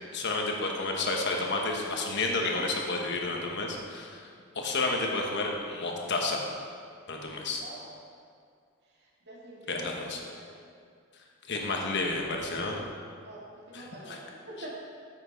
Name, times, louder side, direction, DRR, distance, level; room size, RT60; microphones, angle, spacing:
voice 1, 0.1-4.2 4.5-6.4 7.1-7.6 9.7-10.2 11.5-12.8 13.7-14.2, left 3 dB, 55° left, 1 dB, 1.2 m, -31 dB
voice 2, 9.0-10.7 13.2-14.7, right 1 dB, 55° right, -5 dB, 2.1 m, -46 dB
9.8 x 7.9 x 4.0 m, 2.2 s
head